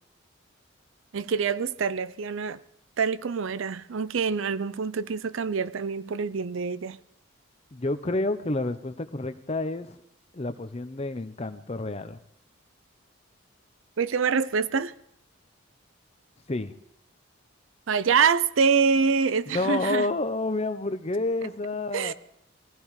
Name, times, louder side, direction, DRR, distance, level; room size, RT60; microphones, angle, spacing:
voice 1, 1.1-2.6 3.0-7.0 14.0-14.9 17.9-20.1 21.9-22.1, right 5 dB, 70° right, 0.5 m, -25 dB
voice 2, 7.7-10.0 10.3-12.2 16.5-16.7 19.5-22.1, left 2 dB, 30° left, 0.7 m, -29 dB
21.5 x 15.5 x 3.2 m
head